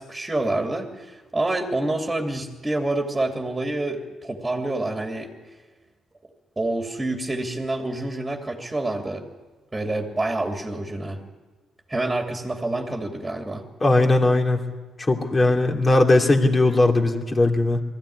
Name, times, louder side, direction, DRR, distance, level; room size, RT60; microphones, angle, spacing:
voice 1, 0.0-5.3 6.6-9.2 9.7-11.2 11.9-13.6, right 2 dB, 15° right, 2 dB, 2.6 m, -27 dB
voice 2, 13.8-14.7 15.1-17.8, left 2 dB, 25° left, 2 dB, 2.9 m, -19 dB
21.5 x 15.0 x 10.0 m, 1.3 s
cardioid pair, 90°, 0 cm